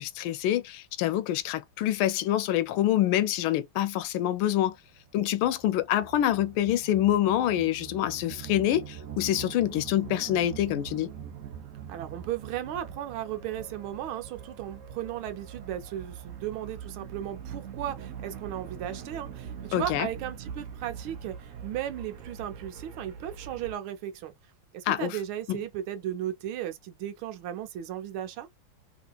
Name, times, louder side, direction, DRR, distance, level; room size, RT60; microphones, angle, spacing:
voice 1, 0.0-4.7 5.1-11.1 19.7-20.1 24.9-25.2 25.5-25.6, left 12 dB, 90° left, 1.4 m, -26 dB
sound 1, 4.5-23.7, right 8 dB, 60° right, 0.8 m, -43 dB
voice 2, 11.9-24.3 24.7-28.5, right 11 dB, 85° right, 1.6 m, -36 dB
3.6 x 2.9 x 2.3 m
omnidirectional pair, 2.2 m